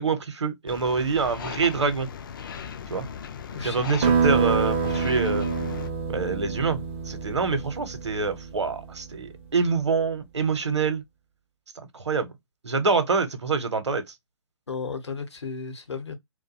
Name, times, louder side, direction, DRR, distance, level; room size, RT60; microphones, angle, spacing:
voice 1, 0.0-2.1 2.9-3.1 3.6-5.5 6.1-11.0 11.9-12.3 12.6-14.0, right 4 dB, 70° right, 0.7 m, -26 dB
sound 1, 0.7-5.9, left 7 dB, 45° left, 0.4 m, -38 dB
voice 2, 3.5-3.8 14.7-16.2, left 5 dB, 70° left, 0.8 m, -34 dB
sound 2, 4.0-9.2, right 5 dB, 25° right, 0.4 m, -26 dB
2.4 x 2.1 x 2.6 m
figure-of-eight pair, 130°, 15 cm